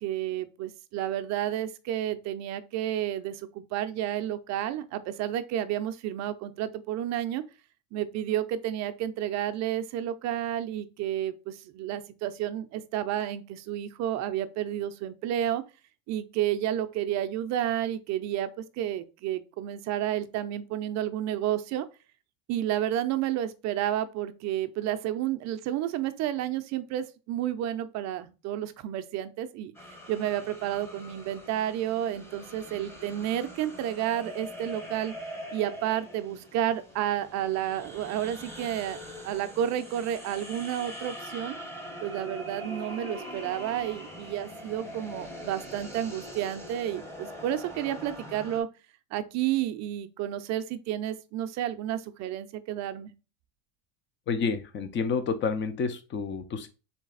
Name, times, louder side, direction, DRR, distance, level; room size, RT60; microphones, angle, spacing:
voice 1, 0.0-7.4 7.9-15.6 16.1-18.5 18.8-21.9 22.5-35.1 35.5-39.0 39.2-41.6 42.0-48.7 49.1-53.1, right 11 dB, 40° right, 0.5 m, -31 dB
sound 1, 29.7-48.6, equal, 5° left, 1.1 m, -43 dB
voice 2, 54.3-56.7, left 5 dB, 25° left, 0.7 m, -29 dB
4.0 x 3.3 x 3.9 m
supercardioid pair, 115°, 42 cm